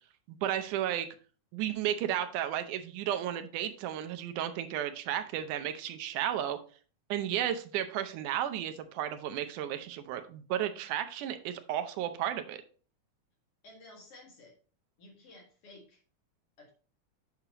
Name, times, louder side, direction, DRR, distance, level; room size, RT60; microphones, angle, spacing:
voice 1, 0.4-1.1 1.5-6.6 7.1-12.6, right 11 dB, 85° right, 8 dB, 2.2 m, -33 dB
voice 2, 13.6-14.6 15.0-16.0 16.6-16.7, left 2 dB, 50° left, 0 dB, 2.6 m, -53 dB
8.3 x 5.8 x 2.9 m, 0.39 s
omnidirectional pair, 3.5 m